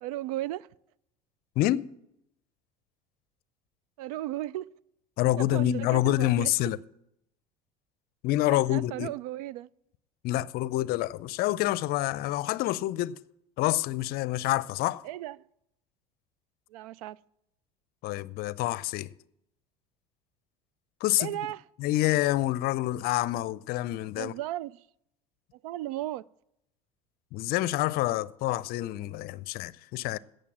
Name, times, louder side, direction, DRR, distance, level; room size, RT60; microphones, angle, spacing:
voice 1, 0.0-0.7 4.0-4.7 5.4-6.5 8.5-9.7 15.0-15.4 16.7-17.2 21.2-21.6 24.1-24.9 25.6-26.2, right 14 dB, 70° right, 0.4 m, -35 dB
voice 2, 1.6-1.9 5.2-6.8 8.2-9.1 10.2-13.2 13.6-15.0 18.0-19.1 21.0-21.3 21.8-24.3 27.3-30.2, left 16 dB, 50° left, 0.5 m, -27 dB
17.0 x 6.7 x 7.3 m
hypercardioid pair, 70°, 20 cm